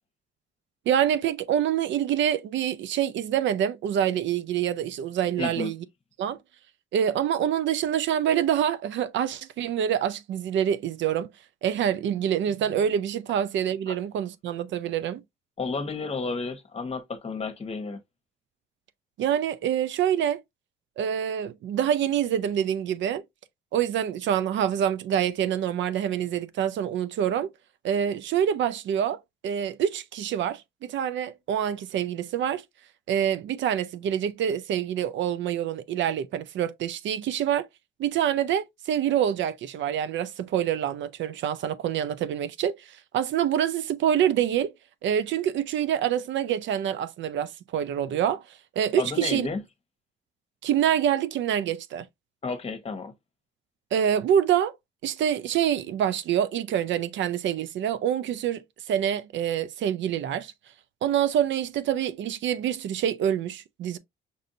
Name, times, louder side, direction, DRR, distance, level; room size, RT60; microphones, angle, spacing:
voice 1, 0.9-5.8 6.2-6.4 6.9-11.3 11.6-15.2 19.2-20.4 21.0-23.2 23.7-27.5 27.8-32.6 33.1-37.7 38.0-44.7 45.0-48.4 48.8-49.5 50.6-52.1 53.9-54.7 55.0-60.5 61.0-64.0, right 9 dB, 70° right, 0.5 m, -26 dB
voice 2, 5.4-5.7 13.9-14.0 15.6-18.0 49.0-49.6 52.4-53.1, left 4 dB, 30° left, 1.0 m, -32 dB
5.4 x 2.5 x 2.6 m
cardioid pair, 90°, 20 cm